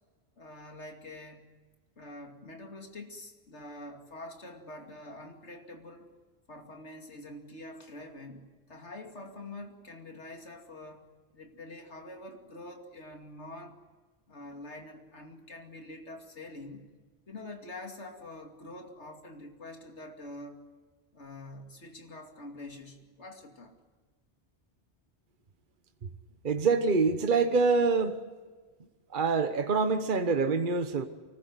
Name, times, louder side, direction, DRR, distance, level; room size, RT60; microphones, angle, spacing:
voice 1, 0.4-1.5 2.0-6.1 6.5-11.1 11.3-13.8 14.3-16.9 17.3-20.6 21.1-23.7, left 2 dB, 85° left, 2.9 m, -46 dB
voice 2, 26.4-28.2 29.1-31.1, right 4 dB, 50° right, 1.3 m, -25 dB
24.5 x 20.0 x 9.5 m
omnidirectional pair, 1.1 m